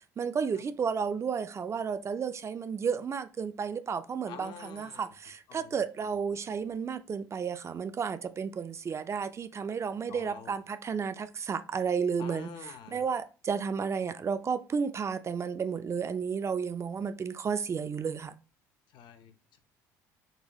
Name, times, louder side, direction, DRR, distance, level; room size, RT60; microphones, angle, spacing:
voice 1, 0.2-12.5 12.9-18.3, right 6 dB, 35° right, 0.4 m, -32 dB
voice 2, 4.3-5.1 5.5-5.8 10.1-10.5 12.2-13.0 18.9-19.6, left 7 dB, 60° left, 0.7 m, -47 dB
4.0 x 2.3 x 2.9 m
hypercardioid pair, 70°, 8 cm